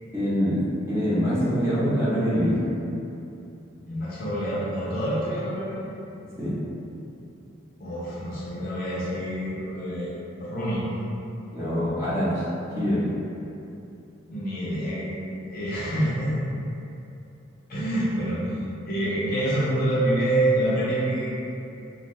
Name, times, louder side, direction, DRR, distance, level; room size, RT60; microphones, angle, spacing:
voice 1, 0.1-2.6 6.4-6.5 11.5-12.4 12.8-13.0, equal, 15° right, -12 dB, 0.7 m, -24 dB
voice 2, 3.9-5.9 7.8-10.1 10.4-10.8 14.3-15.2 15.5-16.3 17.7-21.3, right 1 dB, 45° left, -9 dB, 0.5 m, -27 dB
2.5 x 2.2 x 3.0 m, 2.8 s
head